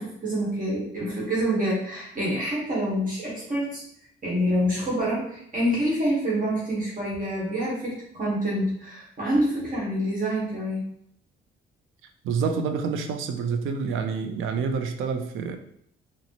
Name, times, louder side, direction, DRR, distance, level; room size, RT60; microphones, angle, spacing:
voice 1, 0.0-3.8 4.2-10.8, equal, 45° right, -6 dB, 1.2 m, -27 dB
voice 2, 12.2-15.6, right 5 dB, 85° right, 7 dB, 0.4 m, -27 dB
4.0 x 2.1 x 2.9 m, 0.69 s
cardioid pair, 90°, 20 cm